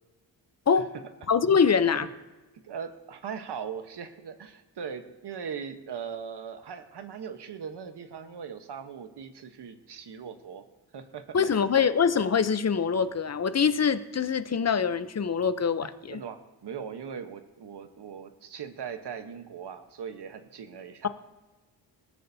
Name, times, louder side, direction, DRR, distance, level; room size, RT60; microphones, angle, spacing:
voice 1, 1.3-2.1 11.3-16.2, left 6 dB, 35° left, 12 dB, 0.8 m, -24 dB
voice 2, 2.6-10.6 10.9-11.6 15.8-21.1, right 7 dB, 70° right, 8 dB, 1.2 m, -40 dB
20.0 x 13.5 x 2.8 m, 1.2 s
cardioid pair, 75°, 43 cm